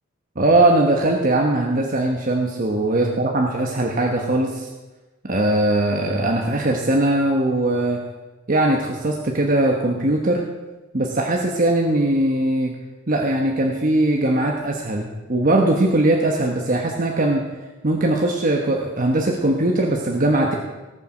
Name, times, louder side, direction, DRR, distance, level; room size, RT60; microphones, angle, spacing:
voice 1, 0.4-4.7 5.2-8.0 8.5-10.4 10.9-12.8 13.1-17.4 17.8-20.6, right 1 dB, 45° right, 0 dB, 1.2 m, -20 dB
18.5 x 7.0 x 6.1 m, 1.2 s
head